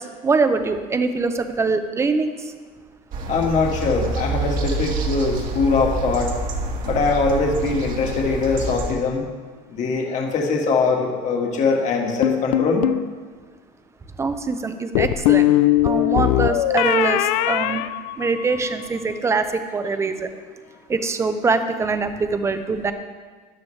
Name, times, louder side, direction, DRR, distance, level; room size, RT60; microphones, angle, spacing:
voice 1, 0.0-2.5 14.2-15.5 15.8-17.8 18.2-20.3 20.9-22.9, right 4 dB, 15° right, 8 dB, 0.7 m, -23 dB
sound 1, 3.1-8.9, right 2 dB, 45° right, 1.6 m, -27 dB
voice 2, 3.3-6.3 6.8-9.2 9.7-12.9, left 4 dB, 35° left, 1 dB, 1.8 m, -22 dB
sound 2, 12.2-13.1 15.0-18.7, left 14 dB, 85° left, 0.5 m, -20 dB
13.5 x 11.0 x 3.3 m, 1.5 s
cardioid pair, 150°, 20 cm